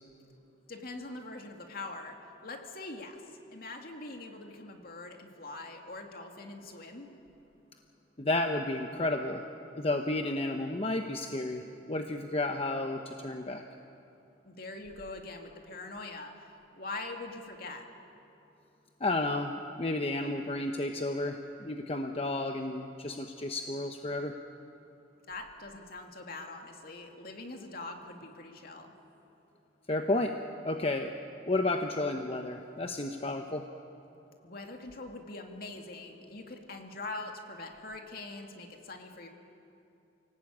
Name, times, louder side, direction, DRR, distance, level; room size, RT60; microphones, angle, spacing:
voice 1, 0.7-2.2 2.4-3.2 3.5-7.1 14.4-16.3 16.7-17.9 25.3-28.9 34.4-39.3, left 2 dB, 55° left, 3 dB, 2.4 m, -43 dB
voice 2, 8.2-9.4 9.8-13.6 19.0-24.3 29.9-30.3 30.6-31.1 31.5-33.6, left 2 dB, 35° left, 4 dB, 0.9 m, -32 dB
28.5 x 18.0 x 8.6 m, 2.8 s
head